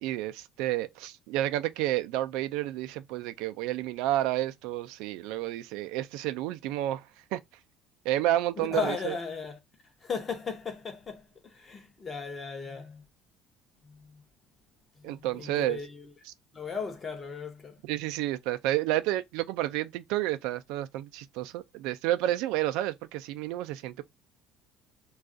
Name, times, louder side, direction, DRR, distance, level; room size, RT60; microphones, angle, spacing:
voice 1, 0.0-7.0 7.3-7.4 8.1-9.1 15.0-15.8 17.9-24.0, right 14 dB, 80° right, 0.3 m, -30 dB
voice 2, 8.6-9.6 10.0-13.0 13.8-14.2 15.0-16.1 16.5-17.8, left 5 dB, 20° left, 0.7 m, -36 dB
2.4 x 2.3 x 3.6 m
cardioid pair, 175°, 0 cm